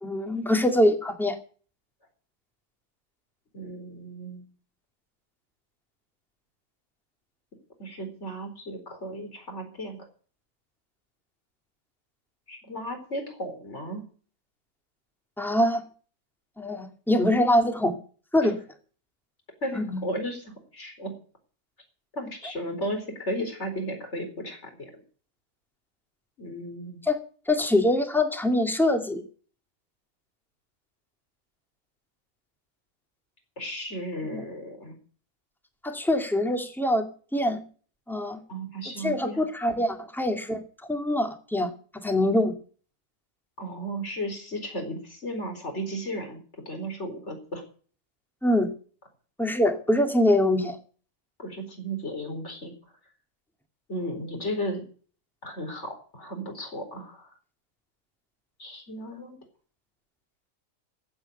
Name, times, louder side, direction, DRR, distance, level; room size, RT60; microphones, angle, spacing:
voice 1, 0.0-1.4 15.4-15.8 16.6-18.0 18.3-18.6 19.7-20.0 27.0-27.2 27.5-29.2 34.3-34.4 35.8-37.1 37.3-37.6 38.1-38.4 39.0-40.6 40.9-41.7 42.0-42.5 48.4-48.7 49.4-50.8, left 1 dB, ahead, 5 dB, 2.1 m, -24 dB
voice 2, 3.5-4.4 7.8-10.0 12.5-14.0 18.4-18.5 19.6-21.1 22.1-24.9 26.4-27.0 33.6-35.0 38.5-39.4 43.6-46.4 46.7-47.6 51.4-52.7 53.9-54.8 55.4-57.3 58.6-59.4, equal, 50° left, 4 dB, 4.6 m, -34 dB
16.0 x 8.1 x 8.0 m, 0.42 s
omnidirectional pair, 1.5 m